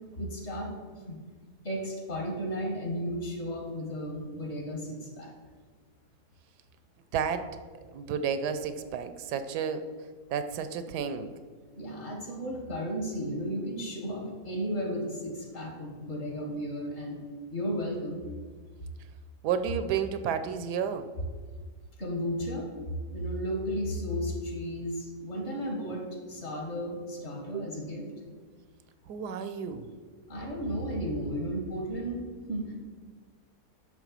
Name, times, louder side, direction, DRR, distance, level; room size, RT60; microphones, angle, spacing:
voice 1, 0.2-0.7 1.1-1.2 1.6-5.3 11.7-17.2 17.5-18.2 22.0-22.8 23.1-28.1 30.3-32.9, equal, 45° left, 0 dB, 1.8 m, -34 dB
voice 2, 7.1-7.5 7.9-9.9 10.3-11.3 19.4-21.1 27.5-27.7 29.1-29.9, right 7 dB, 85° right, 10 dB, 1.2 m, -31 dB
9.9 x 3.3 x 6.7 m, 1.5 s
omnidirectional pair, 1.7 m